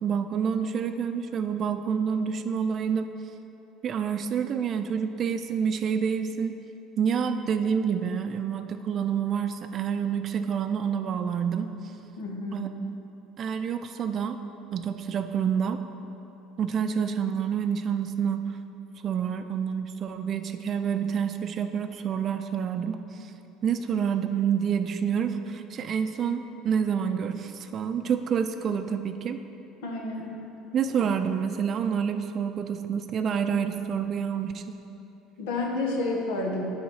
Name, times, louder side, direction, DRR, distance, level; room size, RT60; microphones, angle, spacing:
voice 1, 0.0-3.1 3.8-6.6 7.0-11.7 12.5-12.9 13.4-14.4 14.7-15.8 16.6-18.6 19.0-23.3 23.6-29.4 30.7-34.7, right 7 dB, 45° right, 8 dB, 0.4 m, -28 dB
voice 2, 12.2-12.7 29.8-30.4 35.4-36.6, left 2 dB, 85° left, 0 dB, 1.2 m, -30 dB
8.5 x 4.2 x 5.6 m, 3.0 s
supercardioid pair, 110°, 0 cm